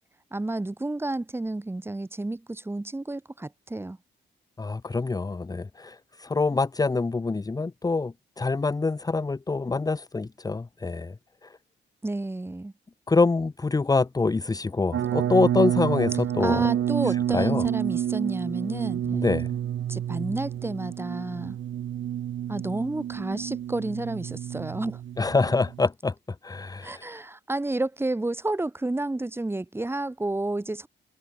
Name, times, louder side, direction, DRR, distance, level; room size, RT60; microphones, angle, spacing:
voice 1, 0.3-4.0 12.0-12.7 16.4-19.0 19.9-21.6 22.5-25.0 26.8-30.9, right 2 dB, 10° right, 7.8 m, -30 dB
voice 2, 4.6-11.1 11.4-11.6 13.1-16.6 17.3-17.7 19.1-19.5 25.2-26.1 26.4-27.2, left 3 dB, 20° left, 1.7 m, -25 dB
sound 1, 14.9-25.9, right 11 dB, 75° right, 1.9 m, -29 dB
wide cardioid pair, 165°, 20 cm